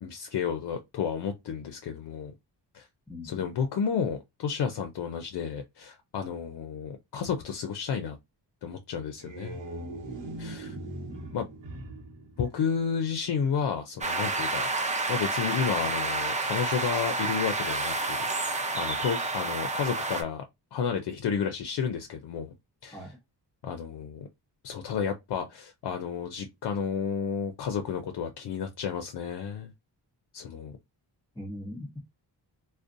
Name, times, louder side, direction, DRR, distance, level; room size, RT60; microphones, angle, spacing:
voice 1, 0.0-2.3 2.7-2.9 3.2-8.2 8.6-9.6 10.4-10.7 11.3-11.5 12.4-14.7 15.1-20.4 20.7-22.5 22.8-23.0 23.6-24.3 24.6-29.7 30.3-30.8, left 7 dB, 65° left, 0.5 m, -31 dB
voice 2, 3.1-3.5 11.1-11.4 22.9-23.2 31.3-32.0, left 1 dB, 10° left, 0.8 m, -41 dB
sound 1, 9.0-13.2, right 1 dB, 90° right, 0.8 m, -41 dB
sound 2, 14.0-20.2, right 3 dB, 15° right, 0.5 m, -29 dB
2.5 x 2.1 x 2.5 m
cardioid pair, 70°, 43 cm